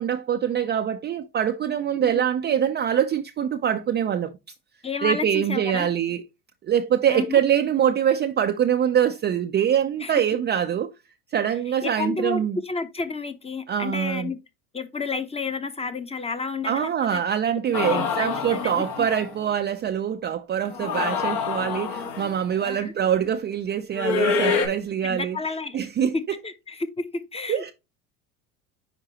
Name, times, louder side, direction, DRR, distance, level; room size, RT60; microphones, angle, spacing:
voice 1, 0.0-4.3 5.0-6.2 6.6-10.9 11.3-12.6 13.7-14.3 16.6-25.4 25.7-26.4 27.5-27.7, right 9 dB, 25° right, 0.4 m, -24 dB
voice 2, 4.8-5.9 7.1-7.4 10.0-10.2 11.8-14.4 14.7-17.2 17.9-19.1 22.6-22.9 25.0-25.9 26.1-27.7, left 4 dB, 15° left, 0.8 m, -31 dB
sound 1, 17.7-19.4 20.7-22.4 24.0-24.7, left 5 dB, 70° left, 1.9 m, -26 dB
9.9 x 3.7 x 2.9 m
hypercardioid pair, 85°, 42 cm